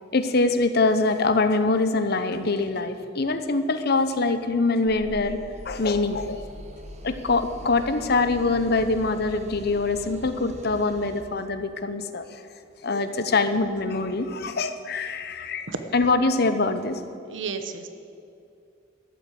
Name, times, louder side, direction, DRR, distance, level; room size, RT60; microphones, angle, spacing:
voice 1, 0.1-5.4 5.6-6.4 7.0-12.4 12.8-15.7 15.9-17.0, left 3 dB, 55° left, 10 dB, 0.9 m, -24 dB
sound 1, 4.8-11.2, right 1 dB, 40° right, 1.4 m, -42 dB
voice 2, 17.3-17.9, right 4 dB, 75° right, 9 dB, 1.1 m, -32 dB
13.0 x 8.0 x 8.8 m, 2.6 s
head